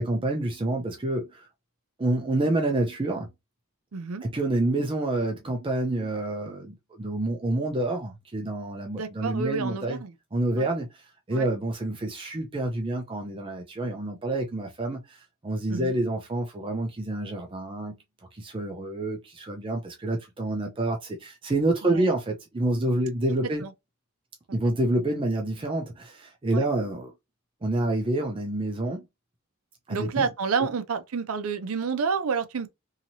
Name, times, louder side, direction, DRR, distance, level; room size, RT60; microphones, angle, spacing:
voice 1, 0.0-1.5 2.0-3.3 4.2-10.0 10.3-17.9 18.3-23.6 24.5-27.1 27.6-29.1 29.9-30.3 30.6-30.7, right 2 dB, 25° right, 0.5 m, -28 dB
voice 2, 3.9-4.2 9.0-10.1 10.6-10.7 11.3-11.5 15.7-15.9 21.8-22.1 23.6-23.7 26.5-26.6 29.9-32.7, right 5 dB, 75° right, 0.5 m, -29 dB
2.8 x 2.8 x 2.6 m
head